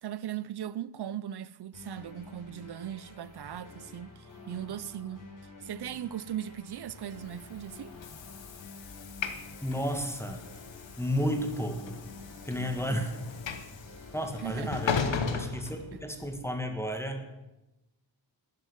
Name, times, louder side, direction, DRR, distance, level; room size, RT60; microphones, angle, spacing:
voice 1, 0.0-4.1 4.5-5.2 5.6-7.9 14.4-14.7, right 10 dB, 65° right, 0.6 m, -38 dB
sound 1, 1.7-15.4, left 3 dB, 45° left, 5.8 m, -50 dB
Train / Sliding door, 7.2-16.4, left 6 dB, 90° left, 1.5 m, -37 dB
voice 2, 9.6-10.4 11.0-12.0 12.4-13.1 14.1-17.2, equal, 5° left, 1.9 m, -32 dB
13.0 x 10.5 x 9.2 m
wide cardioid pair, 115°, 44 cm